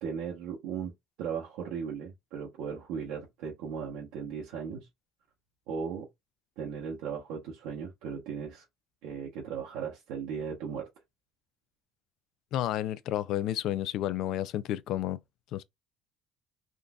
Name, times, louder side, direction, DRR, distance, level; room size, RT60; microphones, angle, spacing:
voice 1, 0.0-0.9 1.2-4.9 5.7-6.1 6.6-8.6 9.0-10.9, right 6 dB, 90° right, 0.9 m, -37 dB
voice 2, 12.5-15.2 15.5-15.6, left 13 dB, 70° left, 0.4 m, -31 dB
3.7 x 2.6 x 2.3 m
cardioid pair, 115°, 0 cm